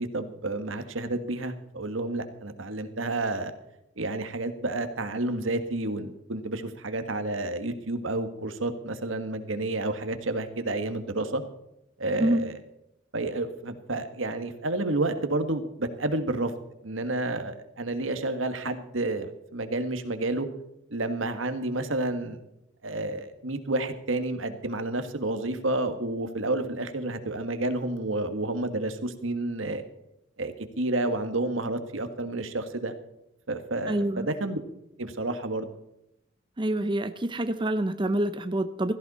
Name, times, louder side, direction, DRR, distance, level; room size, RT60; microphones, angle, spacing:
voice 1, 0.0-3.5 4.0-11.4 12.0-12.5 13.1-16.5 16.8-20.5 20.9-22.4 22.8-29.8 30.4-32.9 33.5-34.6 35.0-35.7, right 2 dB, 85° right, 9 dB, 1.6 m, -30 dB
voice 2, 33.9-34.3 36.6-38.9, right 1 dB, 25° right, 10 dB, 0.6 m, -26 dB
17.0 x 14.0 x 4.2 m, 0.82 s
head